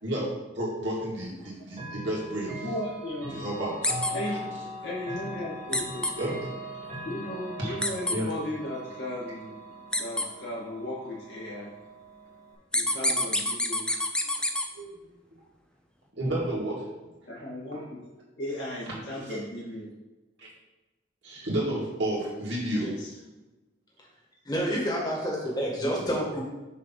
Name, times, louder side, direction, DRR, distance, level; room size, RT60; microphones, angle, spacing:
voice 1, 0.5-2.6 3.3-4.0 4.2-4.4 6.1-6.4 7.6-7.8 8.1-8.3 12.9-13.3 14.7-15.1 16.1-16.9 17.4-17.5 17.7-17.9 19.1-19.4 20.4-20.5 21.2-22.9, right 1 dB, 65° right, -5 dB, 2.3 m, -32 dB
voice 2, 1.4-1.8 24.4-26.4, equal, 20° left, -3 dB, 1.8 m, -29 dB
Chime / Clock, 1.7-12.6, equal, 40° right, 1.6 m, -40 dB
voice 3, 2.6-3.5 4.1-6.3 7.0-9.5 9.9-11.7 12.7-14.0 17.3-18.0 18.4-19.9 22.7-23.1, left 1 dB, 65° left, -7 dB, 2.0 m, -36 dB
sound 1, 3.8-4.1 5.7-6.1 7.8-8.2 9.9-10.2 12.7-14.7, left 1 dB, 5° left, 0.4 m, -26 dB
6.5 x 3.3 x 5.8 m, 1.1 s
head